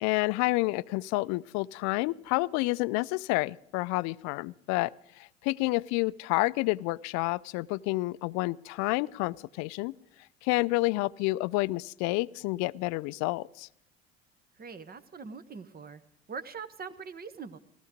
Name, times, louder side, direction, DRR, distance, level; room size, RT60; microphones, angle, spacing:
voice 1, 0.0-4.9 5.2-9.9 10.4-13.7, left 22 dB, 60° left, 19 dB, 0.5 m, -29 dB
voice 2, 14.6-16.0 16.3-17.6, right 5 dB, 30° right, 13 dB, 1.1 m, -42 dB
15.5 x 13.5 x 5.1 m, 0.75 s
hypercardioid pair, 70°, 32 cm